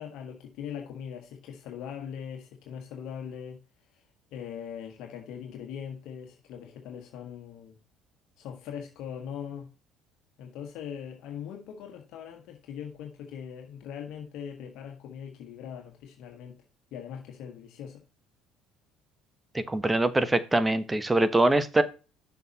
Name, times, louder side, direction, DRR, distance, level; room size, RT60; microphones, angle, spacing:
voice 1, 0.0-3.6 4.3-7.8 8.4-9.7 10.4-16.6 16.9-18.0, left 8 dB, 65° left, 1.6 m, -41 dB
voice 2, 19.5-21.8, right 2 dB, 15° right, 1.1 m, -23 dB
6.8 x 6.0 x 4.1 m
hypercardioid pair, 70°, 0 cm